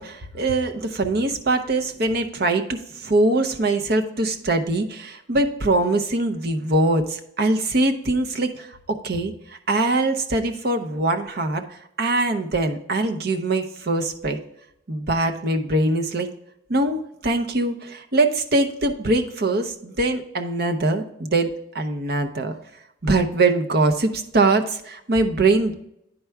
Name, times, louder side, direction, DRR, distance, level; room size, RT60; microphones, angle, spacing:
voice 1, 0.0-14.4 14.9-16.3 16.7-22.6 23.0-25.7, right 2 dB, 55° right, 5 dB, 0.7 m, -22 dB
10.0 x 4.5 x 3.5 m, 0.78 s
head